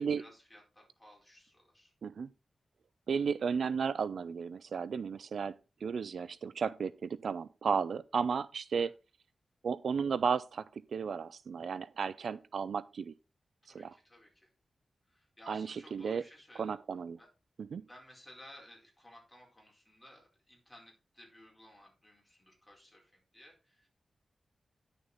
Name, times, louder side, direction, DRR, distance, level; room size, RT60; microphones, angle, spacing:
voice 1, 0.0-1.9 8.7-8.9 13.6-14.5 15.1-16.8 17.2-17.3 17.8-23.9, left 1 dB, 10° left, 4.4 m, -57 dB
voice 2, 3.1-5.6 5.8-8.9 9.6-10.7 10.9-13.1 13.7-13.9 15.5-16.2 16.6-17.2 17.7-17.8, right 6 dB, 70° right, 0.4 m, -34 dB
10.5 x 6.6 x 3.9 m
wide cardioid pair, 155°, 0 cm